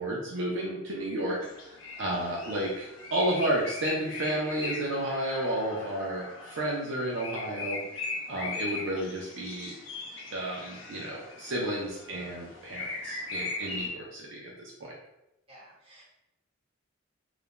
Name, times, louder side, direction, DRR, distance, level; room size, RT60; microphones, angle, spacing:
voice 1, 0.0-1.4 1.6-9.8 10.3-14.9, right 1 dB, 65° right, -3 dB, 0.4 m, -32 dB
sound 1, 1.4-13.9, left 3 dB, 75° left, 0.5 m, -39 dB
voice 2, 15.5-16.0, right 1 dB, 30° right, -8 dB, 1.2 m, -54 dB
2.4 x 2.1 x 3.0 m, 0.88 s
head